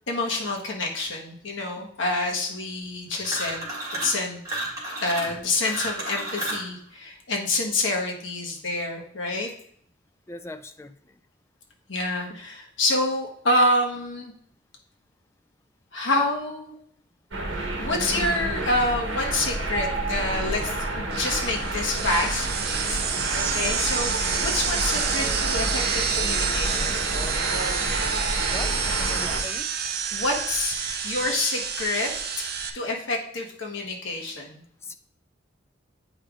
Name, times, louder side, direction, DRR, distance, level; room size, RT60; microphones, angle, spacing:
voice 1, 0.1-3.6 4.0-4.4 5.0-9.5 11.9-14.3 15.9-16.7 17.8-22.5 22.8-23.0 23.3-27.0 30.1-30.8 31.0-32.5 32.7-34.6, left 2 dB, 75° left, 0 dB, 1.2 m, -27 dB
sound 1, 3.2-4.2 4.4-6.7, right 1 dB, 20° right, 1.9 m, -32 dB
voice 2, 10.3-10.9 28.5-29.7 34.8-34.9, left 2 dB, 15° left, 9 dB, 0.3 m, -39 dB
sound 2, 17.3-29.4, right 2 dB, 70° right, 1.1 m, -29 dB
sound 3, 21.1-32.7, right 7 dB, 55° right, 0.5 m, -29 dB
8.6 x 5.0 x 2.4 m, 0.65 s
head